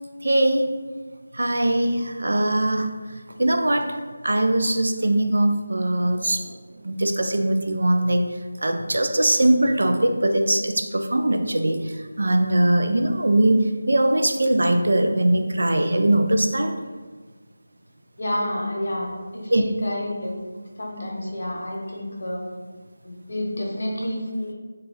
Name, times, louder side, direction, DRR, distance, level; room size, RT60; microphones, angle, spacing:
voice 1, 0.2-0.7 1.3-2.9 3.4-4.0 4.2-6.5 6.8-8.3 8.6-11.8 12.2-13.6 13.9-16.7 19.5-19.6, right 1 dB, 75° right, 5 dB, 0.3 m, -21 dB
voice 2, 18.2-20.4 20.8-22.4 23.0-24.5, left 1 dB, 65° left, -2 dB, 0.8 m, -29 dB
2.6 x 2.2 x 3.2 m, 1.4 s
figure-of-eight pair, 170°, 0 cm